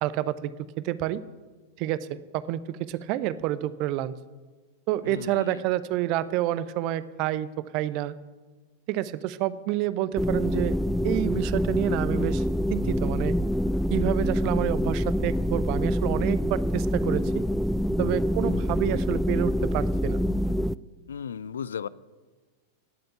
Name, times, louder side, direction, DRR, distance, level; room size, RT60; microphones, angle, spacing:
voice 1, 0.0-0.5 0.8-1.2 1.8-4.1 4.9-8.1 8.9-10.8 11.0-12.4 12.7-13.4 13.9-17.4 18.0-20.2, right 14 dB, 40° right, 16 dB, 0.8 m, -29 dB
voice 2, 5.0-5.6 21.1-21.9, left 7 dB, 65° left, 20 dB, 0.4 m, -35 dB
sound 1, 10.2-20.7, equal, ahead, 0.4 m, -26 dB
18.0 x 7.9 x 8.9 m, 1.3 s
figure-of-eight pair, 90°, 0 cm